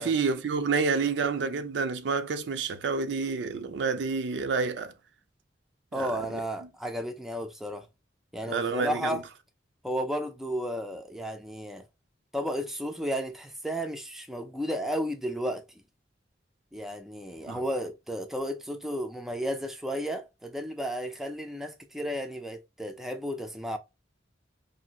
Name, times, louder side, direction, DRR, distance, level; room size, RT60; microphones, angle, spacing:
voice 1, 0.0-4.9 5.9-6.1 6.6-6.7 8.4-9.2 17.5-17.6, right 4 dB, 75° right, 0.4 m, -29 dB
voice 2, 5.9-7.9 8.3-9.2 9.8-11.8 12.3-15.6 16.7-23.8, equal, ahead, 0.3 m, -33 dB
2.7 x 2.6 x 2.8 m
head